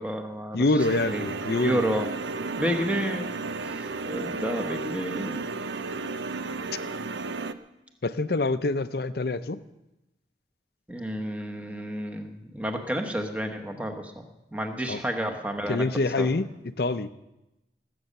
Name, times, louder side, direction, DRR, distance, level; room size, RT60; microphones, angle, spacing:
voice 1, 0.0-1.2 1.6-2.1 2.6-3.3 3.5-5.4 10.9-14.3 14.5-16.3, equal, 10° right, 4 dB, 1.2 m, -31 dB
voice 2, 0.5-1.8 8.0-9.6 14.9-15.0 15.7-16.5 16.8-17.1, left 2 dB, 65° left, 13 dB, 0.6 m, -25 dB
sound 1, 0.8-7.5, right 3 dB, 85° right, 0.7 m, -33 dB
18.5 x 8.5 x 6.7 m, 0.94 s
head